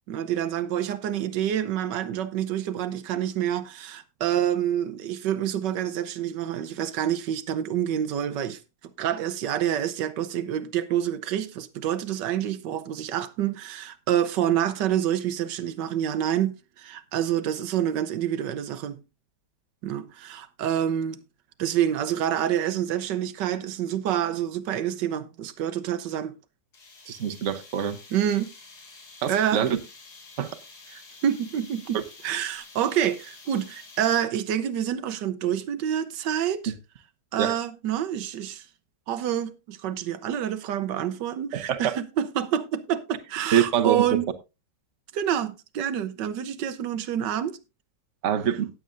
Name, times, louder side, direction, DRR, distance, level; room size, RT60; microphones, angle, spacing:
voice 1, 0.1-19.0 19.8-21.2 21.6-26.3 28.1-28.5 29.3-29.8 31.2-36.7 37.3-38.7 39.1-44.2 45.1-47.6, right 10 dB, 90° right, 1.5 m, -27 dB
sound 1, 26.7-34.5, left 3 dB, 65° left, 2.7 m, -49 dB
voice 2, 27.1-28.0 29.2-29.8 30.4-30.5 30.9-31.0 37.4-37.5 41.5-41.9 43.5-44.1 48.2-48.7, right 9 dB, 50° right, 1.2 m, -25 dB
17.5 x 7.5 x 2.6 m
omnidirectional pair, 1.8 m